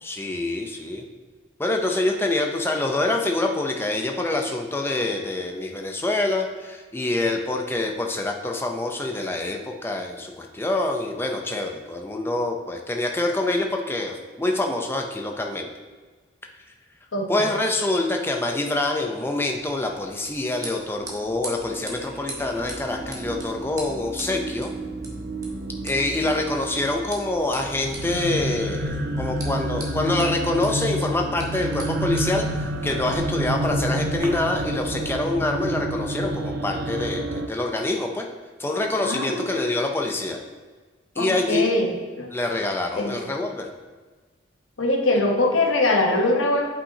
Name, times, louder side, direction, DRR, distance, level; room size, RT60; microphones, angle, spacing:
voice 1, 0.0-1.0 1.6-15.7 17.3-24.7 25.8-38.3 38.6-40.4 41.2-41.7 42.3-43.7, left 2 dB, 10° left, 2 dB, 0.5 m, -26 dB
sound 1, 19.4-34.3, right 2 dB, 15° right, 1.0 m, -43 dB
sound 2, 21.2-37.5, right 1 dB, 50° right, 0.4 m, -30 dB
voice 2, 39.0-39.4 41.2-41.9 42.2-42.3 43.0-43.2 44.8-46.7, left 2 dB, 75° left, 1 dB, 1.0 m, -22 dB
8.6 x 5.4 x 2.8 m, 1.4 s
head